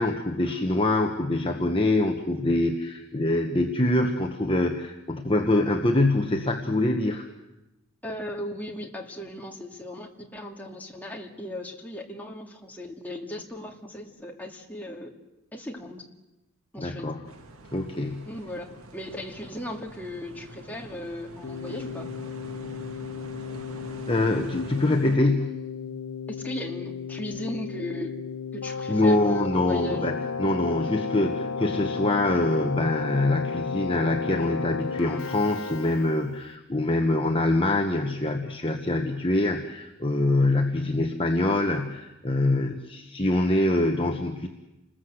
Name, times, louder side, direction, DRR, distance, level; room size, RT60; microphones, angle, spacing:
voice 1, 0.0-7.3 16.8-17.2 17.7-18.3 24.1-25.6 28.9-44.5, left 2 dB, 25° left, 3 dB, 1.3 m, -24 dB
voice 2, 8.0-15.1 15.5-16.1 16.7-17.1 18.3-22.1 26.3-28.2 28.5-30.1, left 1 dB, 10° left, 0 dB, 2.3 m, -37 dB
sound 1, 17.2-25.2, right 1 dB, 80° right, 1.9 m, -45 dB
Keyboard (musical), 21.4-36.5, left 5 dB, 75° left, 0.9 m, -34 dB
29.0 x 20.5 x 7.9 m, 0.97 s
head